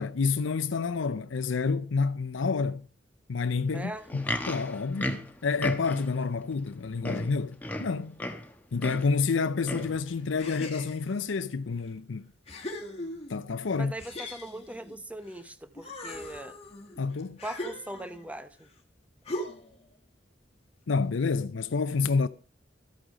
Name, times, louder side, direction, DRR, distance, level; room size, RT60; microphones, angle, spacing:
voice 1, 0.0-2.8 3.3-5.2 5.4-8.2 8.7-12.3 13.3-13.9 17.0-17.4 20.9-22.3, left 4 dB, 90° left, 0.5 m, -29 dB
voice 2, 3.7-4.1 13.7-16.6 17.4-18.7, right 1 dB, 5° right, 0.8 m, -40 dB
Livestock farm animals working animals, 3.9-6.2 6.7-6.8 7.0-8.5 8.8-9.1 9.6-10.0 10.7-10.8, left 1 dB, 10° left, 1.2 m, -34 dB
sound 1, 10.4-11.2 11.9-12.0 12.5-13.5 14.0-15.4 15.7-18.3 19.3-19.8, left 1 dB, 30° left, 1.9 m, -40 dB
13.0 x 8.9 x 4.9 m
head